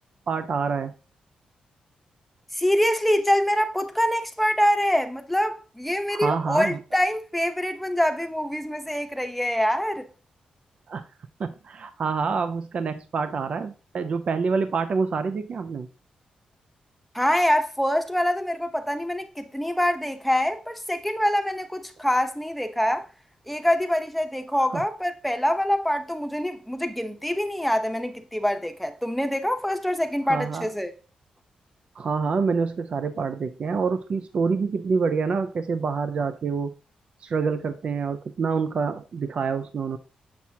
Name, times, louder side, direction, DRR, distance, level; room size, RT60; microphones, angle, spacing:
voice 1, 0.3-0.9 6.1-6.8 10.9-11.1 11.4-15.9 24.7-24.8 30.3-30.7 32.0-36.7 37.2-40.0, right 5 dB, 50° right, 0.4 m, -27 dB
voice 2, 2.5-10.1 17.1-23.0 23.5-30.9, equal, ahead, 0.8 m, -25 dB
7.2 x 6.0 x 2.7 m
cardioid pair, 110°, 2 cm